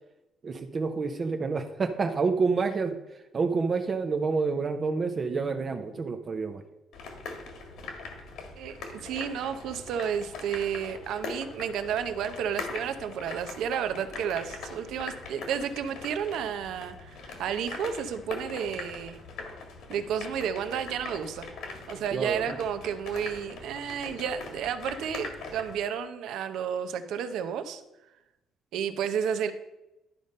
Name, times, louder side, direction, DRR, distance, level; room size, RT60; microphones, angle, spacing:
voice 1, 0.4-3.0 3.3-6.6 22.1-22.6, right 4 dB, 30° right, 6 dB, 0.6 m, -28 dB
sound 1, 6.9-25.8, left 3 dB, 70° left, 1.7 m, -42 dB
voice 2, 8.6-19.2 19.9-21.5 21.9-27.8 28.7-29.5, right 8 dB, 75° right, 10 dB, 0.8 m, -32 dB
11.5 x 5.2 x 5.3 m, 0.96 s
cardioid pair, 160°, 0 cm